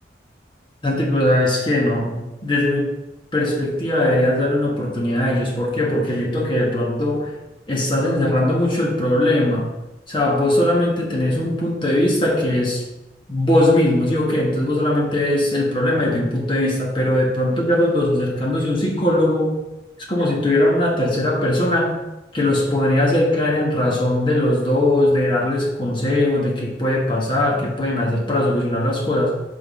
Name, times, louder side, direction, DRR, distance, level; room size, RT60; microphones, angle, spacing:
voice 1, 0.8-2.9 3.3-7.4 7.7-9.7 10.1-12.8 13.3-19.6 20.1-22.0 22.3-29.3, left 1 dB, 25° left, -3 dB, 1.3 m, -20 dB
6.2 x 3.7 x 6.1 m, 0.95 s
head